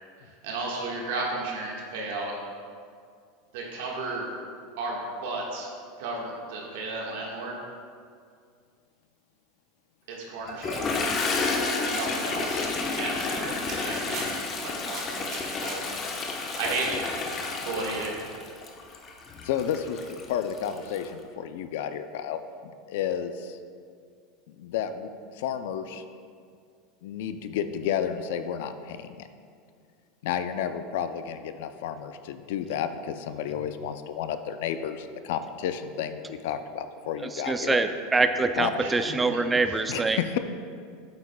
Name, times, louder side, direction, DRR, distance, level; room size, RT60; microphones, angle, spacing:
voice 1, 0.4-2.3 3.5-4.4 4.8-5.7 6.0-7.6 10.1-10.9 11.8-14.3 14.6-15.9 16.1-16.2 16.6-16.9 17.6-18.1 38.8-39.4 39.7-39.8, right 3 dB, 75° right, -2 dB, 1.4 m, -34 dB
Toilet flush, 10.5-21.0, left 3 dB, 35° left, 0.9 m, -31 dB
sound 1, 13.2-18.3, right 3 dB, 50° right, 1.4 m, -44 dB
voice 2, 19.4-23.6 24.5-26.1 27.0-29.3 30.2-37.8 38.5-38.9 39.5-40.4, left 8 dB, 75° left, 10 dB, 0.4 m, -32 dB
voice 3, 37.5-40.2, right 3 dB, 15° right, 8 dB, 0.4 m, -24 dB
8.4 x 8.0 x 2.2 m, 2.2 s
supercardioid pair, 110°, 0 cm